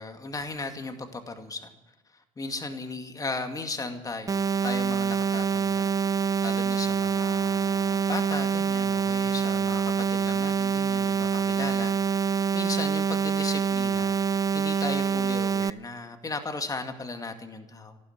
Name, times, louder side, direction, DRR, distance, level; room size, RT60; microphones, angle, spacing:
voice 1, 0.0-1.7 2.1-5.9 6.4-18.0, left 3 dB, 25° left, 6 dB, 2.3 m, -36 dB
sound 1, 4.3-15.7, right 6 dB, 25° right, 0.5 m, -26 dB
14.0 x 12.0 x 7.9 m, 1.1 s
hypercardioid pair, 70°, 15 cm